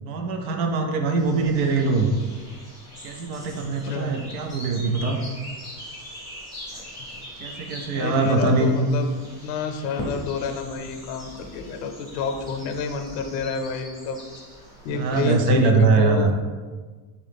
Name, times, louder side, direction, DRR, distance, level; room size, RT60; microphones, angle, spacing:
voice 1, 0.0-2.1 3.0-5.2 7.4-8.7 14.9-16.3, right 3 dB, 60° right, 4 dB, 0.6 m, -22 dB
sound 1, 1.2-15.3, equal, 10° right, 0.3 m, -43 dB
voice 2, 3.8-4.2 7.9-9.1 9.4-14.2 14.8-16.3, left 5 dB, 90° left, 5 dB, 0.7 m, -29 dB
Crackle, 5.9-13.7, left 1 dB, 15° left, 0.7 m, -43 dB
3.8 x 3.0 x 3.3 m, 1.4 s
cardioid pair, 160°, 47 cm